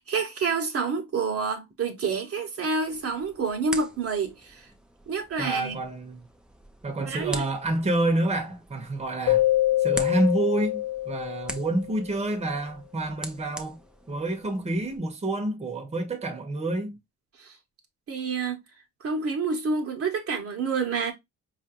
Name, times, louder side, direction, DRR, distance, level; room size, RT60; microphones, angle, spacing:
voice 1, 0.0-4.7 5.1-5.8 7.0-7.4 17.4-17.5 18.1-18.6 19.0-21.1, right 4 dB, 50° right, 1.0 m, -28 dB
sound 1, 2.8-15.0, right 1 dB, 5° right, 0.6 m, -43 dB
voice 2, 5.4-6.3 6.8-9.5 9.8-13.8 14.1-17.0, right 2 dB, 20° right, 0.9 m, -28 dB
Keyboard (musical), 9.3-12.0, left 15 dB, 60° left, 0.6 m, -25 dB
4.4 x 2.5 x 2.9 m
cardioid pair, 90°, 30 cm